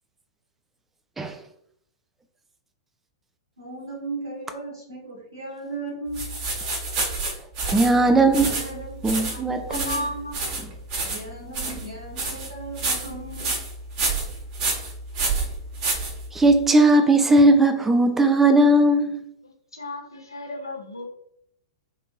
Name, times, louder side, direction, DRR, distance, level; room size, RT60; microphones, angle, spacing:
voice 1, 3.6-6.3 8.4-8.9 11.1-13.6 14.0-14.1, right 2 dB, 80° right, 1.1 m, -36 dB
sound 1, 6.1-16.6, right 3 dB, 40° right, 0.9 m, -29 dB
voice 2, 7.7-8.6 9.0-10.0 16.3-19.2, right 2 dB, 10° right, 0.3 m, -18 dB
voice 3, 8.8-10.7 19.4-21.1, left 1 dB, 85° left, 0.6 m, -35 dB
3.0 x 2.5 x 2.2 m
figure-of-eight pair, 105°, 2 cm